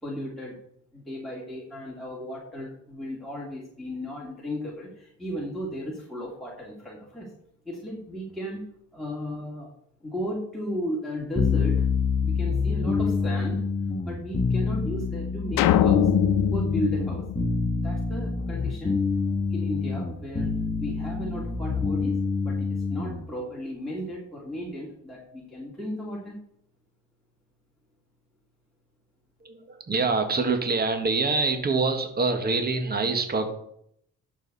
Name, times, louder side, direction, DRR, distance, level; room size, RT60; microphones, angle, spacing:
voice 1, 0.0-0.5 0.9-7.3 7.7-8.7 8.9-9.7 10.0-11.8 12.2-13.6 14.0-16.1 16.5-17.3 17.8-19.0 19.5-20.5 20.8-26.4, equal, ahead, -5 dB, 2.9 m, -35 dB
sound 1, 11.3-23.2, left 4 dB, 15° left, 1.6 m, -26 dB
sound 2, 15.6-18.0, left 12 dB, 90° left, 0.8 m, -23 dB
voice 2, 29.4-33.5, right 3 dB, 30° right, 6 dB, 1.7 m, -25 dB
12.0 x 6.6 x 4.2 m, 0.71 s
cardioid pair, 90°, 31 cm